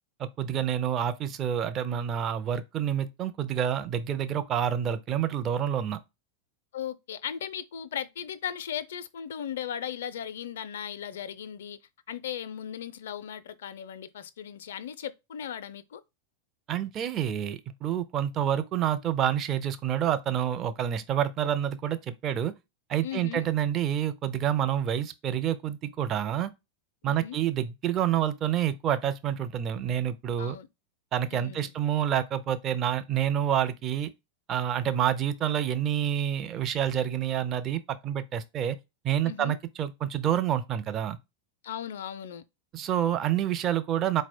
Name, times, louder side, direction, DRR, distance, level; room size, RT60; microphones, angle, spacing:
voice 1, 0.2-6.0 16.7-22.5 22.9-26.5 27.0-30.6 31.1-34.1 34.5-38.8 39.0-41.2 42.7-44.2, right 10 dB, 30° right, 0.5 m, -28 dB
voice 2, 6.7-11.8 12.1-16.0 23.0-23.4 27.0-27.4 30.4-30.7 31.3-31.7 39.2-39.6 41.6-42.4, left 9 dB, 60° left, 0.4 m, -37 dB
4.2 x 2.1 x 4.2 m
figure-of-eight pair, 90°, 0 cm